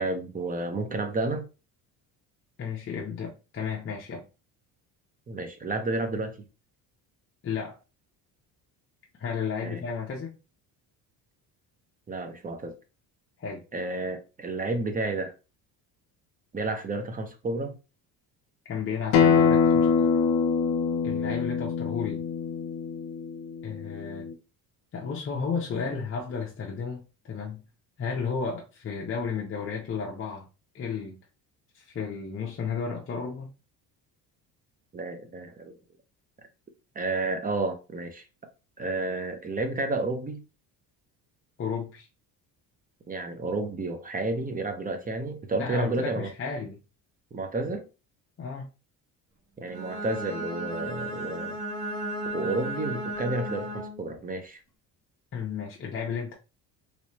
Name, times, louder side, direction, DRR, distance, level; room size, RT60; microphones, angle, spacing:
voice 1, 0.0-1.4 5.3-6.4 9.6-9.8 12.1-12.7 13.7-15.3 16.5-17.7 34.9-35.8 36.9-38.2 38.8-40.4 43.1-46.3 47.3-47.9 49.6-51.6 52.3-54.6, right 2 dB, 20° right, 0.6 m, -31 dB
voice 2, 2.6-4.2 7.4-7.8 9.2-10.3 13.4-13.6 18.7-20.1 21.0-22.2 23.6-24.2 24.9-27.6 28.0-30.5 30.7-31.2 31.7-33.5 41.6-42.1 45.6-46.8 48.4-48.7 55.3-56.3, left 6 dB, 30° left, 0.7 m, -33 dB
Acoustic guitar, 19.1-24.3, left 6 dB, 65° left, 0.7 m, -24 dB
Bowed string instrument, 49.7-54.2, right 1 dB, 40° right, 1.4 m, -34 dB
3.2 x 3.1 x 2.9 m
cardioid pair, 115°, 39 cm